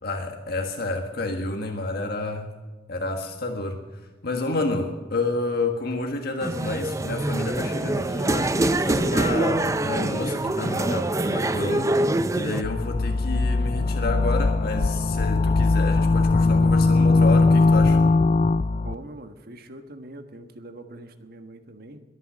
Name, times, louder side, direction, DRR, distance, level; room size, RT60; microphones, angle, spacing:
voice 1, 0.0-2.5 2.9-3.8 4.2-18.0, left 2 dB, 55° left, 3 dB, 1.7 m, -29 dB
sound 1, 6.4-12.6, right 2 dB, 15° right, 0.5 m, -24 dB
sound 2, 12.6-18.9, left 3 dB, 40° left, 0.4 m, -20 dB
voice 2, 18.8-22.0, right 1 dB, 55° right, 7 dB, 1.4 m, -42 dB
22.0 x 9.5 x 6.3 m, 1.2 s
head